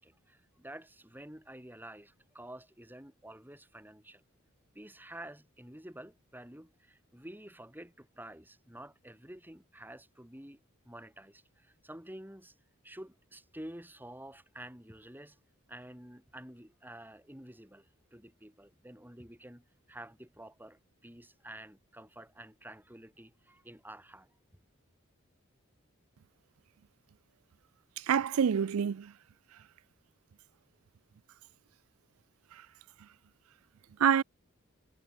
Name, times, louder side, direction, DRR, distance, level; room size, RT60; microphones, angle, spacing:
voice 1, 0.0-4.2 4.7-10.6 10.8-12.5 12.8-15.4 15.7-24.3, right 1 dB, 10° right, 5.0 m, -50 dB
voice 2, 28.0-29.1 34.0-34.2, right 8 dB, 85° right, 0.4 m, -26 dB
head